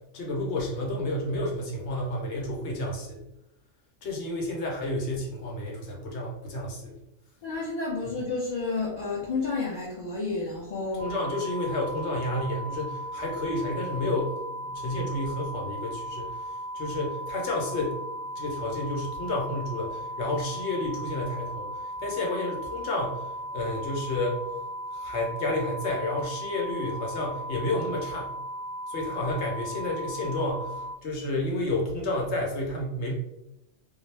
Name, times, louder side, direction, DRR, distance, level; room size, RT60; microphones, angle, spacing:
voice 1, 0.1-3.2 4.0-6.9 8.0-8.1 11.0-14.4 14.6-18.0 18.4-21.7 22.0-23.3 23.5-24.4 24.9-28.3 28.9-33.1, left 1 dB, 75° left, -1 dB, 1.0 m, -30 dB
voice 2, 7.4-11.1, left 3 dB, 55° left, -5 dB, 0.5 m, -30 dB
sound 1, 11.0-31.0, equal, 50° right, 0.6 m, -37 dB
2.2 x 2.0 x 3.1 m, 0.84 s
omnidirectional pair, 1.2 m